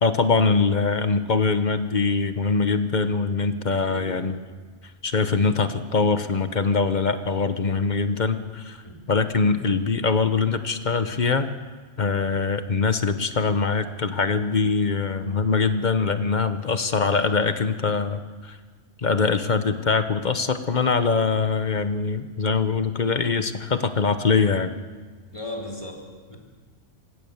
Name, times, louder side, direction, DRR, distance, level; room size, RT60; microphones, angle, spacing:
voice 1, 0.0-4.4 5.0-8.8 9.1-11.5 12.0-18.6 19.0-24.7, left 4 dB, 40° left, 10 dB, 1.1 m, -23 dB
voice 2, 3.8-4.4 8.8-9.1 25.3-26.4, left 1 dB, 25° left, -1 dB, 3.8 m, -37 dB
27.0 x 16.0 x 7.3 m, 1.4 s
omnidirectional pair, 1.3 m